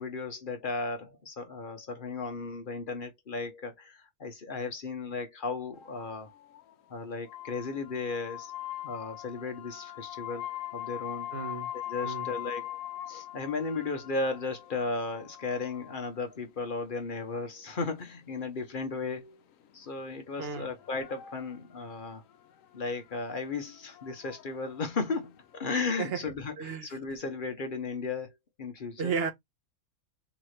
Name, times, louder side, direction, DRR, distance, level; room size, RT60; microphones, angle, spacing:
voice 1, 0.0-6.3 6.9-8.5 8.8-11.3 11.9-12.8 13.1-19.4 19.7-22.2 22.7-28.3 28.6-29.1, left 3 dB, 45° left, 0.8 m, -35 dB
sound 1, 5.8-6.7 7.3-16.1 18.1-18.2 20.5-21.9 22.3-22.4 22.6-23.1 23.7-25.4, left 13 dB, 70° left, 1.0 m, -42 dB
voice 2, 11.3-11.7 12.0-12.3 20.4-20.7 26.0-26.2 26.6-27.0 29.0-29.3, right 5 dB, 50° right, 1.0 m, -33 dB
3.9 x 2.9 x 3.1 m
omnidirectional pair, 1.5 m